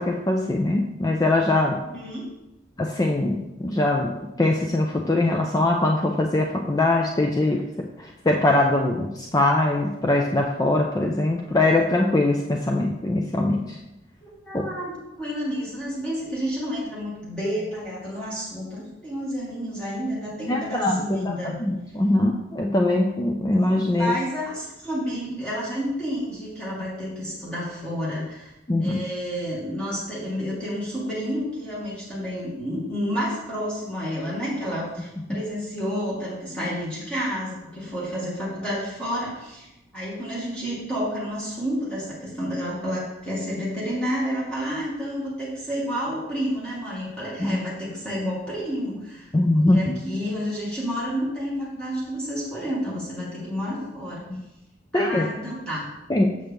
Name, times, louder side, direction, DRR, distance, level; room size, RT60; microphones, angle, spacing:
voice 1, 0.0-1.8 2.8-4.1 4.4-7.6 8.0-13.8 14.5-14.6 20.5-21.3 21.6-24.2 28.7-29.0 47.4-47.6 49.3-49.9 54.3-54.4 54.9-55.3 56.1-56.3, left 2 dB, 20° left, 1 dB, 0.5 m, -22 dB
voice 2, 1.8-2.3 14.2-21.6 23.5-28.5 28.8-54.3 54.9-55.9, equal, 5° left, -8 dB, 2.0 m, -30 dB
7.5 x 6.6 x 3.5 m, 0.98 s
head